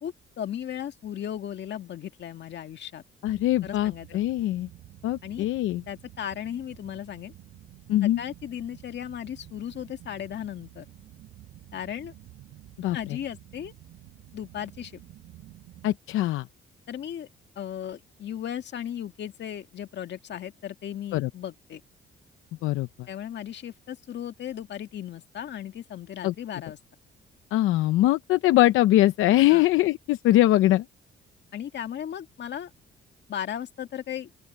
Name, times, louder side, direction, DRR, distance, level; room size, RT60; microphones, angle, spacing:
voice 1, 0.0-3.0 3.6-4.2 5.2-5.5 5.9-7.3 8.0-10.9 11.7-12.1 12.9-13.7 14.3-15.0 16.9-17.3 17.6-21.8 23.1-26.8 29.5-29.6 31.5-32.7 33.3-34.3, left 10 dB, 60° left, 2.0 m, -36 dB
voice 2, 3.2-4.7 5.0-5.8 7.9-8.2 12.8-13.0 15.8-16.5 21.1-21.3 22.6-22.9 26.2-26.3 27.5-30.8, left 15 dB, 90° left, 0.7 m, -22 dB
sound 1, 3.2-16.0, right 15 dB, 90° right, 7.2 m, -50 dB
open air
cardioid pair, 90°, 20 cm